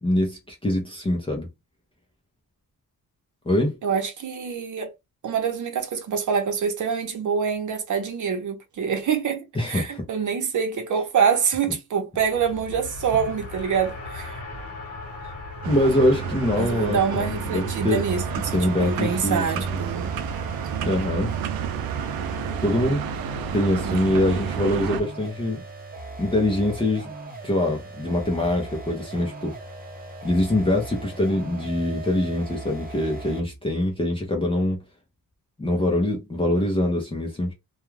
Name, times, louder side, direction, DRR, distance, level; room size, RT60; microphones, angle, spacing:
voice 1, 0.0-1.5 3.5-3.8 9.6-10.0 15.7-18.0 18.5-19.4 20.8-21.3 22.6-23.0 23.5-25.6 26.2-27.1 27.4-29.6 30.2-34.8 35.6-37.5, left 1 dB, 15° left, 0.6 m, -24 dB
voice 2, 3.8-4.9 5.2-14.4 16.6-20.1 23.8-24.0, right 6 dB, 55° right, 0.8 m, -26 dB
Race car auto racing, 12.1-23.5, left 3 dB, 40° left, 1.2 m, -40 dB
sound 1, 15.6-25.0, right 8 dB, 80° right, 0.5 m, -30 dB
sound 2, 18.1-33.6, right 2 dB, 25° right, 0.8 m, -38 dB
2.3 x 2.2 x 3.1 m
cardioid pair, 125°, 35 cm